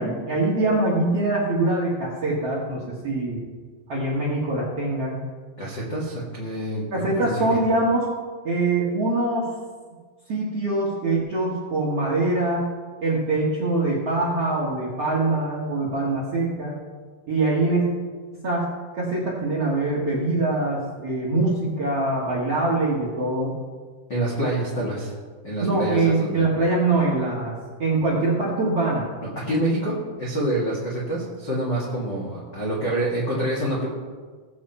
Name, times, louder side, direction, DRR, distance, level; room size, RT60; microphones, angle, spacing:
voice 1, 0.0-3.4 3.9-5.2 6.9-8.1 8.4-9.5 10.3-12.7 13.0-16.7 17.3-17.8 18.3-18.7 18.9-23.5 25.6-29.1, right 2 dB, 60° right, -5 dB, 1.6 m, -23 dB
voice 2, 5.6-7.6 24.1-25.1 25.4-26.4 29.3-33.9, right 1 dB, 65° left, -6 dB, 1.0 m, -27 dB
17.5 x 7.8 x 4.4 m, 1.5 s
omnidirectional pair, 5.7 m